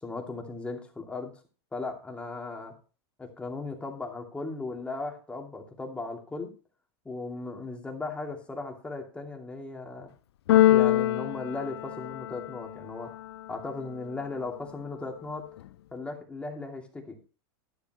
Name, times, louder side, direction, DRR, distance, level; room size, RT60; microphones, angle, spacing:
voice 1, 0.0-1.4 1.7-2.7 3.2-6.5 7.0-10.1 10.6-13.1 13.5-15.5 15.9-17.2, left 3 dB, 10° left, 1 dB, 2.6 m, -37 dB
Keyboard (musical), 10.5-12.6, left 13 dB, 85° left, 0.5 m, -23 dB
11.5 x 11.0 x 3.0 m, 0.34 s
supercardioid pair, 140°, 13 cm